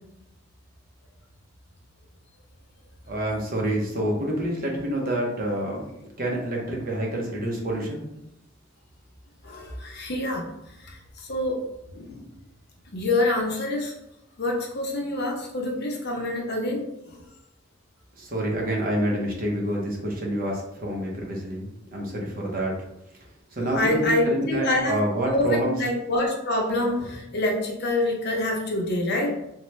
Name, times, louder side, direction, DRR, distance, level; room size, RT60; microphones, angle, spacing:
voice 1, 3.1-5.9 6.2-8.0 18.2-22.8 23.5-25.8, right 1 dB, 50° right, -1 dB, 0.8 m, -27 dB
voice 2, 9.4-10.4 10.8-11.6 11.9-12.2 12.9-13.9 14.4-17.2 23.7-29.3, left 2 dB, 55° left, 0 dB, 0.7 m, -26 dB
3.1 x 2.1 x 3.0 m, 0.85 s
head